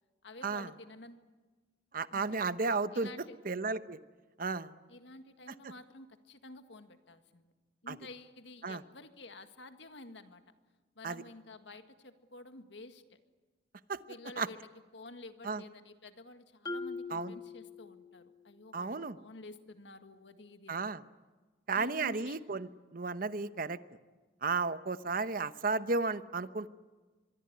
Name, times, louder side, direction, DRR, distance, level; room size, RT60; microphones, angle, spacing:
voice 1, 0.2-1.3 2.1-2.3 2.9-3.4 4.9-7.5 7.8-10.4 11.0-13.2 14.1-14.7 14.9-20.8 21.7-22.4, left 2 dB, 70° left, 8 dB, 1.9 m, -51 dB
voice 2, 1.9-3.1 3.4-4.0 4.4-4.7 7.9-8.0 8.6-8.8 11.0-11.2 13.9-14.0 14.4-14.5 15.4-15.6 17.1-17.3 18.7-19.2 20.7-21.0 21.7-23.8 24.4-26.7, right 4 dB, 50° right, 13 dB, 0.9 m, -33 dB
Marimba xylophone, 16.6-18.4, left 3 dB, 20° left, 1.7 m, -42 dB
24.5 x 23.0 x 9.7 m, 1.3 s
head